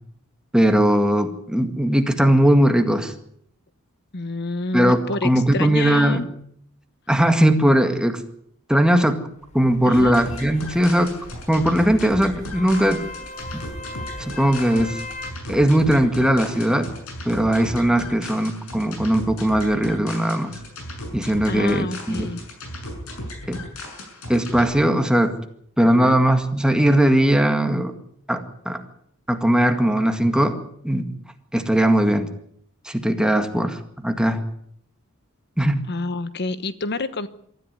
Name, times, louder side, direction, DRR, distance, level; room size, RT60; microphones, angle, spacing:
voice 1, 0.5-3.1 4.7-6.2 7.1-8.2 8.7-9.2 9.5-11.2 11.5-13.0 13.5-13.7 14.2-15.0 15.5-16.9 17.3-20.5 21.1-22.3 23.5-23.6 24.3-25.4 25.8-27.9 28.3-28.8 29.3-31.1 31.5-32.3 32.9-34.4 35.6-35.8, right 1 dB, 5° right, 6 dB, 1.9 m, -19 dB
voice 2, 4.1-6.2 9.9-10.1 21.5-22.4 25.8-26.2 35.9-37.3, left 2 dB, 50° left, 13 dB, 1.1 m, -28 dB
sound 1, 9.3-15.3, left 2 dB, 30° left, 2.0 m, -39 dB
sound 2, 9.9-24.7, left 1 dB, 70° left, 7.0 m, -36 dB
23.5 x 14.0 x 9.4 m, 0.68 s
head